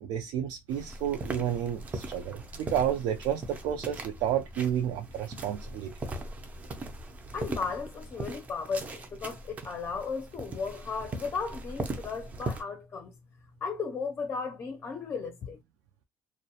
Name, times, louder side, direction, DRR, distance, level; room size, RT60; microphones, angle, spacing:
voice 1, 0.0-5.9, right 10 dB, 80° right, 0.4 m, -31 dB
sound 1, 0.7-12.6, right 2 dB, 25° right, 0.5 m, -40 dB
voice 2, 7.3-13.1 13.6-15.6, left 5 dB, 30° left, 0.5 m, -35 dB
2.3 x 2.0 x 2.8 m
cardioid pair, 150°, 6 cm